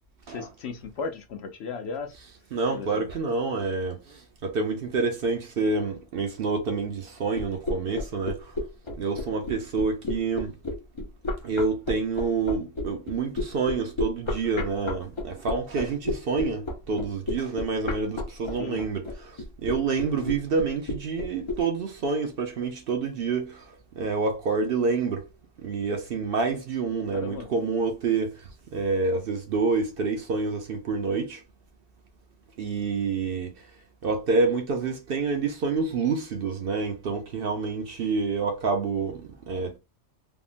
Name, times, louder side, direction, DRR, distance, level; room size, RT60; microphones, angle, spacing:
voice 1, 0.3-2.1 2.7-3.1 18.6-18.8 27.1-27.5, left 5 dB, 65° left, 0.8 m, -35 dB
voice 2, 2.5-8.5 9.0-10.5 11.4-23.7 23.9-25.3 25.6-31.4 32.6-33.5 34.0-39.8, right 4 dB, 60° right, 0.7 m, -28 dB
sound 1, 7.3-21.6, left 2 dB, 40° left, 0.4 m, -31 dB
3.5 x 2.0 x 2.5 m
omnidirectional pair, 1.3 m